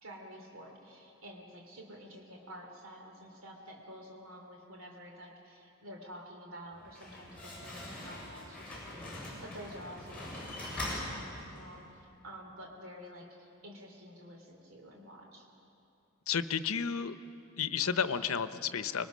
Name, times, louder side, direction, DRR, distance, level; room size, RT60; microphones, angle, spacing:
voice 1, 0.0-10.3 10.6-15.5, equal, 70° right, 1 dB, 2.8 m, -50 dB
Slam, 6.7-11.8, left 1 dB, 5° left, 7.3 m, -42 dB
voice 2, 16.3-17.2 17.6-19.1, left 7 dB, 85° left, 11 dB, 0.8 m, -32 dB
25.5 x 22.0 x 6.3 m, 2.8 s
head